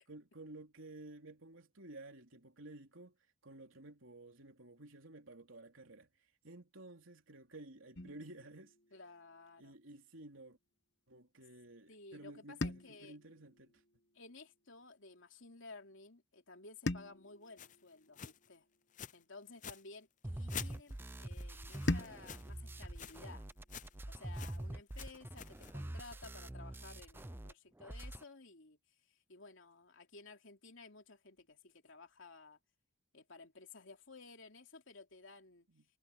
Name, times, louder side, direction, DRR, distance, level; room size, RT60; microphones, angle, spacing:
voice 1, 0.0-3.2 3.4-6.1 6.4-8.7 9.6-10.6 11.1-13.8 35.7-35.9, right 2 dB, 80° right, 3.3 m, -53 dB
sound 1, 8.0-10.2 12.6-14.9 16.9-19.3 21.9-24.4, left 2 dB, 55° left, 1.1 m, -44 dB
voice 2, 8.9-9.7 11.9-13.2 14.1-18.7 19.1-23.5 24.1-32.6 33.1-35.7, left 3 dB, 70° left, 3.0 m, -55 dB
sound 2, 17.6-17.8 18.2-18.5 18.9-19.2 19.5-19.8 20.5-22.6 22.9-23.2 23.5-24.0 24.3-24.6 24.9-25.8, left 8 dB, 40° left, 0.6 m, -49 dB
sound 3, 20.2-27.5 27.8-28.2, right 1 dB, 10° right, 0.4 m, -45 dB
head